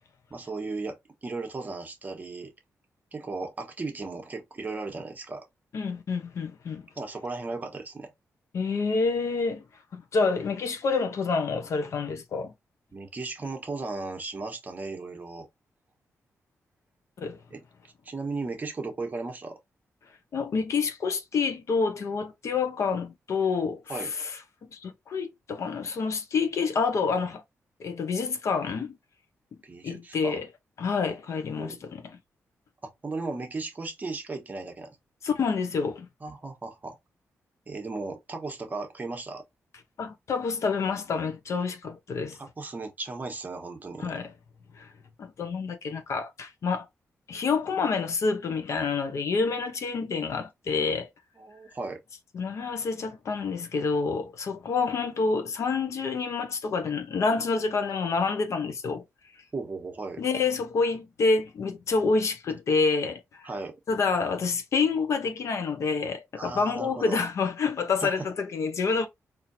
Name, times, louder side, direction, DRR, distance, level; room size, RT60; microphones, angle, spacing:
voice 1, 0.3-2.5 3.1-5.5 7.0-8.1 12.9-15.5 17.5-17.6 18.0-19.6 23.9-24.1 29.6-30.4 31.6-31.8 32.8-35.0 36.2-37.0 37.7-39.4 42.4-44.2 51.4-52.0 59.5-60.2 63.4-63.8 66.4-67.2 68.0-68.3, right 3 dB, 30° right, 1.0 m, -36 dB
voice 2, 5.7-6.9 8.5-9.6 9.9-12.5 17.2-17.4 20.3-23.8 24.2-24.3 24.7-27.4 27.8-28.9 29.8-30.4 30.8-32.2 35.2-36.1 40.0-42.4 44.0-44.3 44.8-44.9 45.2-46.9 47.3-51.1 52.3-59.0 60.2-63.5 63.9-69.1, left 4 dB, 65° left, 0.8 m, -28 dB
4.2 x 2.7 x 2.6 m
cardioid pair, 105°, 5 cm